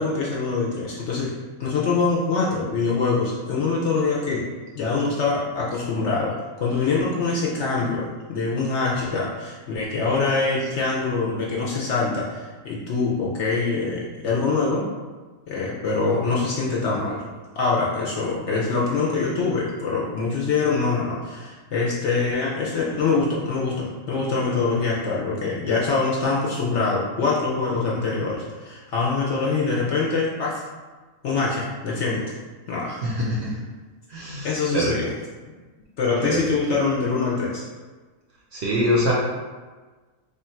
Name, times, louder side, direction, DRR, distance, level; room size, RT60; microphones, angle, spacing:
voice 1, 0.0-1.3 1.6-4.4 4.7-14.9 15.5-17.2 17.5-30.6 31.2-32.4 32.7-33.0 34.4-35.1 36.0-37.6, left 4 dB, 60° left, -4 dB, 0.8 m, -24 dB
voice 2, 33.0-33.5 34.1-34.9 36.2-36.4 38.5-39.1, equal, 60° right, -4 dB, 0.7 m, -24 dB
3.4 x 2.4 x 4.3 m, 1.3 s
omnidirectional pair, 1.6 m